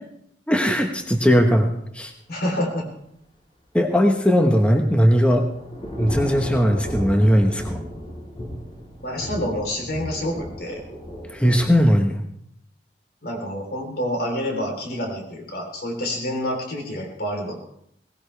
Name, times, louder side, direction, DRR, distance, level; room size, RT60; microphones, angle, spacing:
voice 1, 0.5-2.1 3.7-5.4 6.0-7.8 11.3-12.2, equal, 5° left, 3 dB, 1.1 m, -18 dB
voice 2, 2.3-2.9 9.0-10.8 13.2-17.6, equal, 60° left, 1 dB, 3.7 m, -28 dB
Thunder / Rain, 4.8-11.9, equal, 30° left, 4.0 m, -34 dB
18.5 x 17.5 x 3.4 m, 0.71 s
head